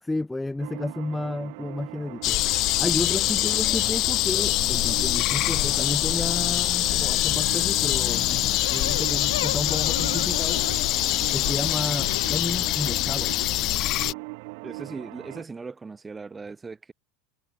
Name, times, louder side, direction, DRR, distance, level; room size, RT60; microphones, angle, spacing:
voice 1, 0.0-2.4 2.8-10.6 11.3-13.4, left 2 dB, 10° left, 0.9 m, -32 dB
sound 1, 0.6-15.4, right 31 dB, 70° right, 7.4 m, -40 dB
sound 2, 2.2-14.1, left 17 dB, 55° left, 0.3 m, -24 dB
sound 3, 8.6-13.4, left 12 dB, 85° left, 1.3 m, -37 dB
voice 2, 14.6-16.9, right 4 dB, 20° right, 4.4 m, -38 dB
hypercardioid pair, 95°, 0 cm